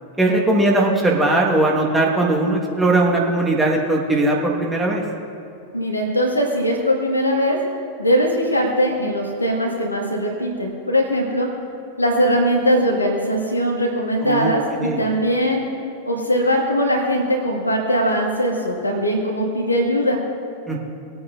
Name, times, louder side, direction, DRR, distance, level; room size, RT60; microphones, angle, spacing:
voice 1, 0.2-5.0 14.2-15.0 20.7-20.8, right 2 dB, 10° right, -2 dB, 1.7 m, -19 dB
voice 2, 5.7-7.6 8.0-11.5 12.0-15.6 16.0-20.2, equal, 85° left, 0 dB, 1.7 m, -20 dB
20.0 x 8.6 x 2.6 m, 2.7 s
figure-of-eight pair, 90°, 0 cm